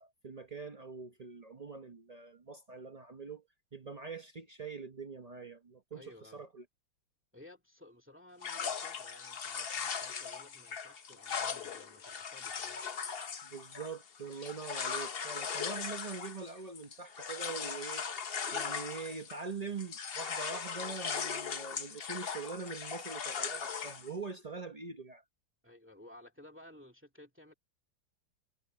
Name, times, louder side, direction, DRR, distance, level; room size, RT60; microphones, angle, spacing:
voice 1, 0.0-3.4 3.7-6.6 13.4-25.2, right 4 dB, 85° right, 0.3 m, -43 dB
voice 2, 5.9-6.4 7.3-12.8 25.6-27.5, left 1 dB, 5° right, 2.0 m, -56 dB
sound 1, 8.4-19.5 19.8-24.1, left 6 dB, 55° left, 0.6 m, -39 dB
omnidirectional pair, 2.3 m